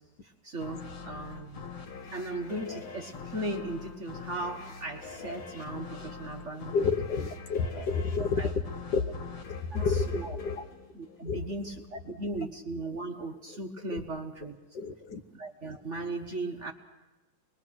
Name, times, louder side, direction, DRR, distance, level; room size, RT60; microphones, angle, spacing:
voice 1, 0.2-1.6 2.1-6.7 8.2-8.5 9.7-10.4 10.9-14.6 15.3-16.7, right 2 dB, 45° right, 3 dB, 1.2 m, -37 dB
sound 1, 0.6-11.8, left 5 dB, 75° left, 2.6 m, -44 dB
voice 2, 6.7-8.5 8.9-9.2 9.8-10.7 11.2-11.4 13.9-14.0 14.7-15.2, left 4 dB, 60° left, 7 dB, 1.5 m, -29 dB
26.0 x 21.0 x 6.3 m, 1.1 s
omnidirectional pair, 2.3 m